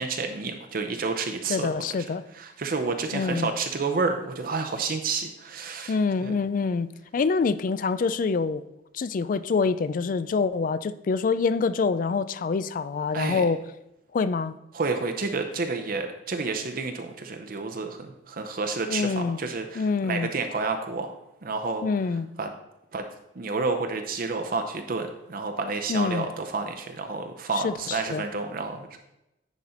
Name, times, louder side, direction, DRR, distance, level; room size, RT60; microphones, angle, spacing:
voice 1, 0.0-1.7 2.3-6.4 13.1-13.4 14.7-21.1 21.4-21.8 22.4-22.5 22.9-23.0 23.4-29.0, right 4 dB, 50° right, 0.6 m, -30 dB
voice 2, 1.5-2.2 3.1-3.5 5.9-8.6 8.9-13.6 14.1-14.5 18.9-19.4 19.8-20.3 21.8-22.3 25.9-26.3 27.5-28.3, left 4 dB, 50° left, 0.3 m, -26 dB
10.0 x 4.1 x 4.4 m
head